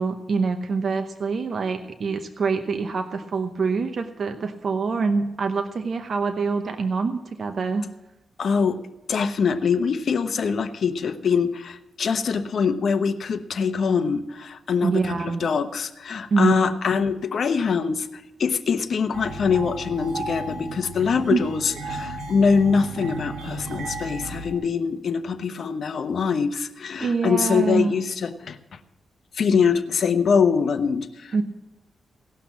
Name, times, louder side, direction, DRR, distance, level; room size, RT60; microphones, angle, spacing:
voice 1, 0.0-7.8 14.8-15.5 16.3-16.5 21.3-21.4 27.0-27.9 31.3-31.4, right 4 dB, 55° right, 6 dB, 0.9 m, -25 dB
voice 2, 8.4-8.8 9.1-18.1 18.4-28.6 29.4-31.4, left 6 dB, 60° left, 9 dB, 0.9 m, -23 dB
sound 1, 19.1-24.5, right 2 dB, 90° right, 1.8 m, -34 dB
17.5 x 6.0 x 7.3 m, 0.97 s
cardioid pair, 95°, 0 cm